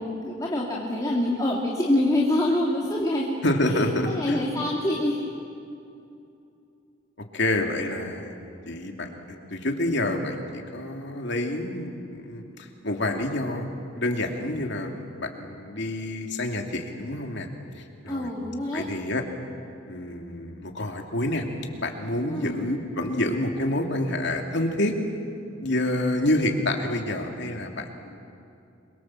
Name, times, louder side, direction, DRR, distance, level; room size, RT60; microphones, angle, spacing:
voice 1, 0.0-3.3 3.6-5.2 18.1-18.9 22.3-22.6, left 1 dB, 20° left, -3 dB, 2.4 m, -26 dB
voice 2, 3.4-4.5 7.3-8.3 8.7-13.7 13.9-17.5 17.7-18.3 18.7-19.2 19.9-21.5 21.8-24.9 25.6-28.2, left 1 dB, 60° left, 3 dB, 2.7 m, -28 dB
27.5 x 23.0 x 7.6 m, 2.6 s
head